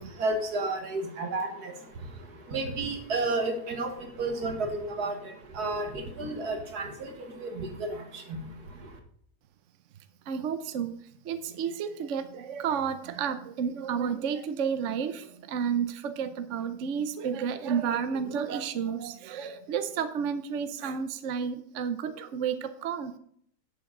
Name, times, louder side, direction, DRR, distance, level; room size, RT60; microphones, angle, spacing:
voice 1, 0.0-1.7 2.5-3.9 4.2-4.7 5.0-5.1 5.6-6.9 7.4-7.7 8.3-8.4, right 3 dB, 80° right, 5 dB, 2.1 m, -31 dB
voice 2, 10.3-10.9 11.2-23.1, right 7 dB, 60° right, 10 dB, 1.0 m, -31 dB
11.0 x 7.8 x 3.8 m, 0.65 s
omnidirectional pair, 1.6 m